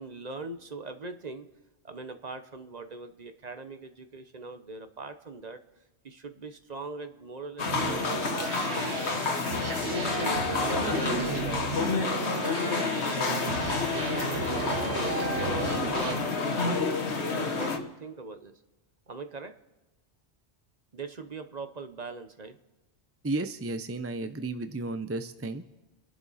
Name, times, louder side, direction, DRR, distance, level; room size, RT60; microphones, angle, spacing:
voice 1, 0.0-1.5 1.8-5.6 6.0-9.3 9.8-14.0 14.5-18.5 19.1-19.5 20.9-22.6, right 3 dB, 40° right, 8 dB, 1.0 m, -41 dB
sound 1, 7.6-17.8, left 4 dB, 75° left, 1.6 m, -29 dB
sound 2, 7.7-16.1, right 4 dB, 80° right, 1.5 m, -35 dB
voice 2, 23.2-25.6, right 2 dB, 20° right, 9 dB, 0.5 m, -33 dB
30.0 x 11.0 x 4.2 m, 1.1 s
omnidirectional pair, 1.1 m